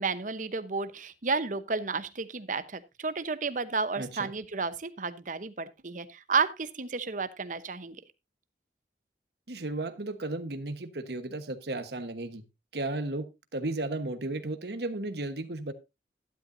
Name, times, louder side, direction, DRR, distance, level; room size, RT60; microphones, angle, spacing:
voice 1, 0.0-8.0, right 4 dB, 45° right, 12 dB, 0.9 m, -32 dB
voice 2, 4.0-4.4 9.5-12.4 12.7-13.3 13.5-15.7, right 2 dB, 65° right, 9 dB, 1.2 m, -34 dB
13.0 x 11.5 x 2.7 m, 0.25 s
head